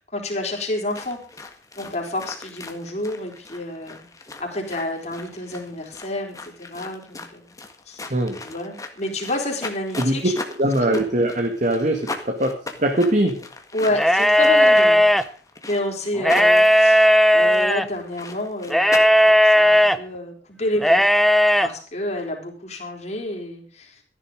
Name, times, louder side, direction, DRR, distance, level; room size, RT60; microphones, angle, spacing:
voice 1, 0.0-1.5 1.8-4.1 4.4-7.5 7.9-8.0 8.4-10.3 10.8-11.0 13.7-15.0 15.7-17.0 17.3-21.0 21.6-24.0, left 1 dB, 40° left, 1 dB, 4.3 m, -29 dB
sound 1, 0.9-19.0, left 3 dB, 20° left, 1.8 m, -38 dB
voice 2, 10.6-13.4, right 1 dB, 45° right, 4 dB, 1.9 m, -22 dB
sound 2, 13.9-15.2 16.2-17.9 18.7-20.0 20.8-21.7, equal, ahead, 0.6 m, -15 dB
14.0 x 11.0 x 5.2 m, 0.41 s
head